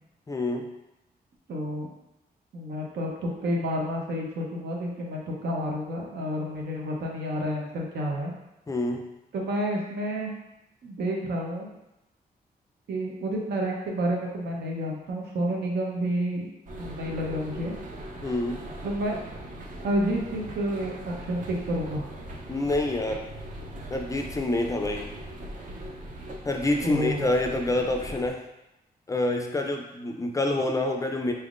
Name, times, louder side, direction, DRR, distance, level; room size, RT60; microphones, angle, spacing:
voice 1, 0.3-0.7 8.7-9.0 18.2-18.6 22.5-23.3 23.9-25.1 26.4-28.4 29.1-31.3, left 2 dB, 20° left, 3 dB, 0.3 m, -27 dB
voice 2, 1.5-1.9 2.5-8.3 9.3-10.3 10.8-11.7 12.9-16.5 16.8-17.8 18.8-19.2 19.8-22.0 26.7-27.3, equal, 85° right, -1 dB, 0.8 m, -30 dB
sound 1, 16.7-28.3, right 1 dB, 50° right, 0.6 m, -40 dB
4.2 x 3.5 x 2.5 m, 0.91 s
wide cardioid pair, 150°, 17 cm